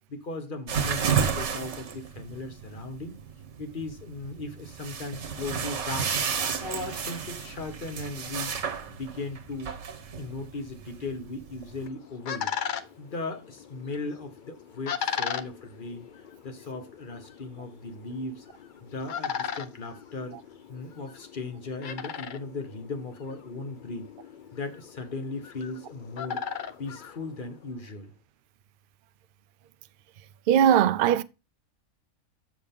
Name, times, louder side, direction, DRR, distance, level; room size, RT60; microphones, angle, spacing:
voice 1, 0.1-3.2 3.6-6.2 6.6-8.5 8.9-9.7 10.1-12.5 13.0-16.1 16.4-18.4 18.8-20.4 20.7-24.1 24.5-26.4 26.8-28.1, left 3 dB, 40° left, 1.3 m, -37 dB
sound 1, 0.7-11.9, right 7 dB, 60° right, 1.3 m, -32 dB
sound 2, 11.6-27.8, left 7 dB, 60° left, 0.5 m, -38 dB
voice 2, 30.5-31.2, right 9 dB, 80° right, 0.4 m, -19 dB
7.0 x 6.5 x 3.6 m
omnidirectional pair, 1.4 m